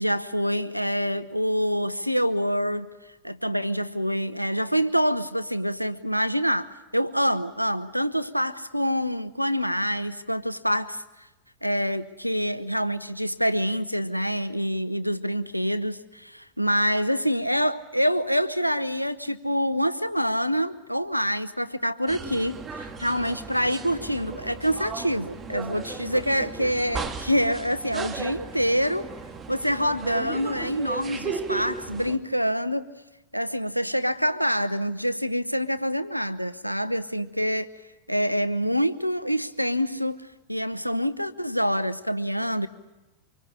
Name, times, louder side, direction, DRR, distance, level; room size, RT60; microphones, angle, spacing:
voice 1, 0.0-2.9 3.2-11.0 11.6-29.1 29.5-32.9 33.3-37.7 38.1-40.2 40.5-42.7, equal, 90° left, 13 dB, 0.8 m, -26 dB
sound 1, 22.1-32.2, right 5 dB, 20° right, 2.1 m, -36 dB
25.0 x 23.5 x 8.6 m, 1.0 s
figure-of-eight pair, 90°, 0 cm